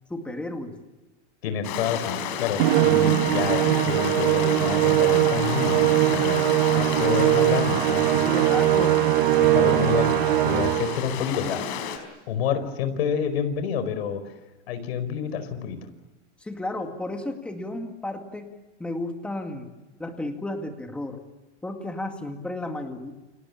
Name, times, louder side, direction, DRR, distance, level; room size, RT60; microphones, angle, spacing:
voice 1, 0.1-0.8 8.2-9.0 16.4-18.5 18.8-19.7 20.0-21.2 21.6-23.1, left 1 dB, 5° left, 4 dB, 2.0 m, -33 dB
voice 2, 1.4-6.4 6.7-8.3 8.7-8.9 9.4-11.7 12.3-14.2 14.7-15.8, left 7 dB, 60° left, 10 dB, 5.1 m, -28 dB
Stream, 1.6-12.0, left 8 dB, 40° left, 4.7 m, -32 dB
Musical instrument, 2.6-11.1, right 14 dB, 50° right, 1.7 m, -21 dB
29.5 x 27.0 x 7.3 m, 1.1 s
supercardioid pair, 170°, 35 cm